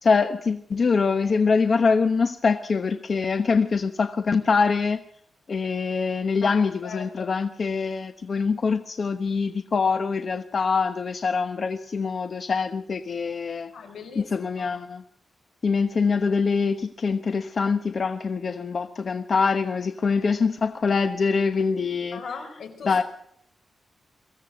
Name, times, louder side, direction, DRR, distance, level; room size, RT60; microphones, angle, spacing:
voice 1, 0.0-5.0 5.5-13.7 14.2-15.0 15.6-22.2 22.8-23.0, left 5 dB, 50° left, 9 dB, 1.0 m, -24 dB
voice 2, 6.4-7.4 13.7-14.3 14.6-14.8 22.1-23.0, left 5 dB, 85° left, 7 dB, 4.7 m, -39 dB
23.0 x 16.0 x 7.9 m, 0.69 s
wide cardioid pair, 125°, 0 cm